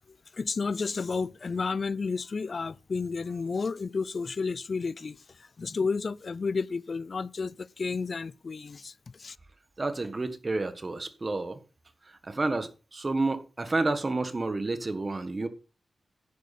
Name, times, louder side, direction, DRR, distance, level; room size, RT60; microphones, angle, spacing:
voice 1, 0.3-5.2 5.6-8.9 9.2-9.4, left 4 dB, 50° left, 0.5 m, -31 dB
voice 2, 9.8-11.6 12.1-15.5, right 2 dB, 35° right, 1.5 m, -30 dB
10.5 x 10.5 x 4.3 m
cardioid pair, 75°, 0 cm